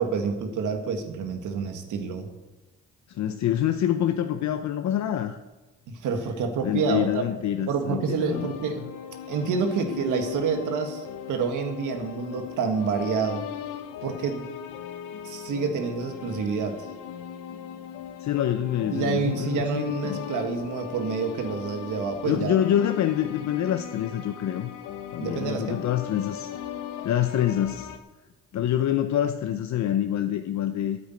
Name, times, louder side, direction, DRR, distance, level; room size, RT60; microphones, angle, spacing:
voice 1, 0.0-2.3 5.9-7.2 7.7-8.9 9.3-13.5 14.0-14.5 15.2-16.9 18.9-22.6 25.2-25.8, right 5 dB, 80° right, 6 dB, 1.8 m, -28 dB
voice 2, 3.1-5.4 6.6-8.5 18.2-20.2 22.2-24.7 25.1-26.5 27.0-27.9 28.5-31.0, left 11 dB, 65° left, 8 dB, 0.8 m, -26 dB
sound 1, 8.3-28.0, left 9 dB, 90° left, 1.0 m, -38 dB
9.7 x 8.5 x 9.2 m, 1.1 s
cardioid pair, 90°, 30 cm